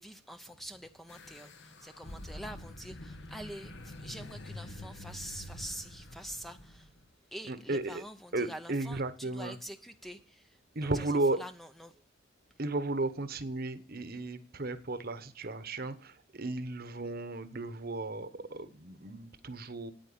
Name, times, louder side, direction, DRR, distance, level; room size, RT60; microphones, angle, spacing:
voice 1, 0.0-6.9 7.3-11.1 11.4-12.0, equal, ahead, 0.7 m, -46 dB
sound 1, 1.1-7.1, left 1 dB, 55° left, 1.3 m, -47 dB
voice 2, 7.5-8.0 8.3-9.6 10.7-11.4 12.6-19.9, right 2 dB, 45° right, 1.2 m, -34 dB
9.3 x 9.3 x 8.7 m
head